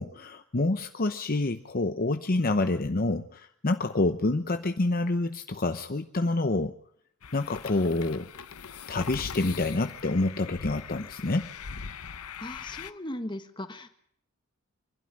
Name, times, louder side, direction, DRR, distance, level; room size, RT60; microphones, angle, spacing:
voice 1, 0.0-6.7 7.3-8.3 8.9-11.5, left 2 dB, 40° left, 8 dB, 0.8 m, -27 dB
sound 1, 7.2-12.9, left 6 dB, 90° left, 0.9 m, -41 dB
voice 2, 12.4-13.9, left 1 dB, 20° left, 8 dB, 1.6 m, -38 dB
26.5 x 12.0 x 10.0 m, 0.67 s
head